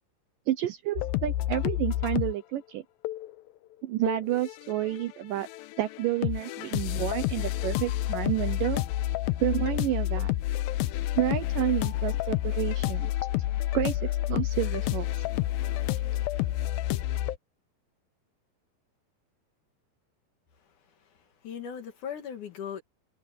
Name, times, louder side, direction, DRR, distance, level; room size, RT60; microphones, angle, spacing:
voice 1, 0.5-2.8 3.8-5.5 5.8-8.8 9.4-10.3 11.2-13.1 13.7-15.1, right 14 dB, 75° right, 2.1 m, -30 dB
sound 1, 1.0-2.3 3.0-3.3 4.1-5.1 5.3-17.4, left 14 dB, 80° left, 2.3 m, -29 dB
voice 2, 20.5-22.8, left 8 dB, 55° left, 2.8 m, -40 dB
omnidirectional pair, 4.6 m